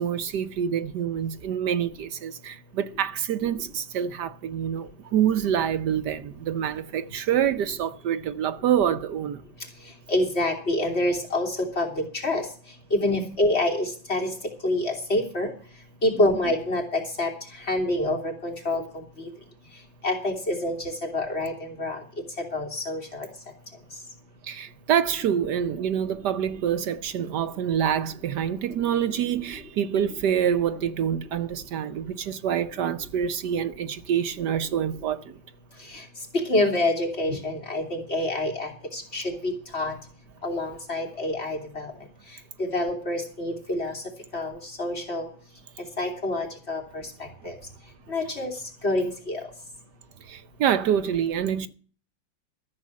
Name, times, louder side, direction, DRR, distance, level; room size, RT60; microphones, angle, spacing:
voice 1, 0.0-9.4 16.2-16.3 24.4-35.4 50.2-51.7, right 9 dB, 70° right, 1.3 m, -26 dB
voice 2, 10.1-11.5 11.8-11.9 12.2-12.4 12.9-14.3 14.6-15.5 16.0-17.3 17.7-18.8 20.0-20.8 21.1-22.0 22.5-23.0 36.5-39.9 40.4-41.9 42.7-43.9 44.3-44.5 44.8-45.2 46.0-46.8 47.5-47.6 48.1-48.5 48.8-49.4, left 1 dB, 35° left, 3.5 m, -26 dB
14.0 x 7.5 x 7.3 m
omnidirectional pair, 2.0 m